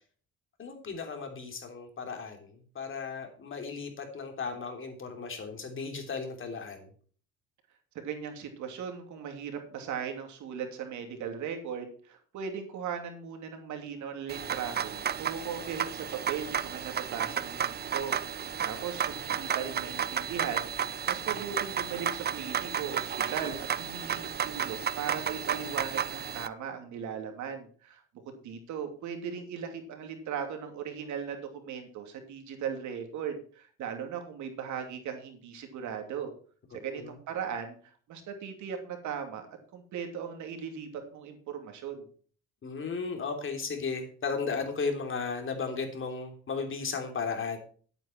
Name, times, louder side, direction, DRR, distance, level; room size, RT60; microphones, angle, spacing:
voice 1, 0.6-6.9 36.7-37.1 42.6-47.6, left 5 dB, 40° left, 4 dB, 3.3 m, -35 dB
voice 2, 7.9-36.3 36.7-39.5 39.7-42.1, right 7 dB, 70° right, 4 dB, 2.9 m, -38 dB
sound 1, 14.3-26.5, right 8 dB, 35° right, 0.6 m, -33 dB
11.0 x 9.0 x 4.5 m, 0.43 s
cardioid pair, 95°, 30 cm